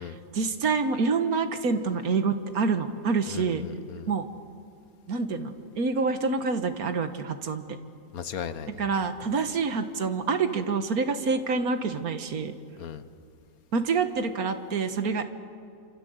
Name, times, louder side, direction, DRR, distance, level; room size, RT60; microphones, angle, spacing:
voice 1, 0.0-3.6 4.1-4.3 5.1-7.6 8.8-12.5 13.7-15.2, right 4 dB, 85° right, 8 dB, 1.8 m, -27 dB
voice 2, 3.3-4.1 8.1-8.9 12.8-13.0, left 7 dB, 80° left, 12 dB, 1.5 m, -37 dB
28.0 x 26.5 x 8.0 m, 2.3 s
omnidirectional pair, 1.5 m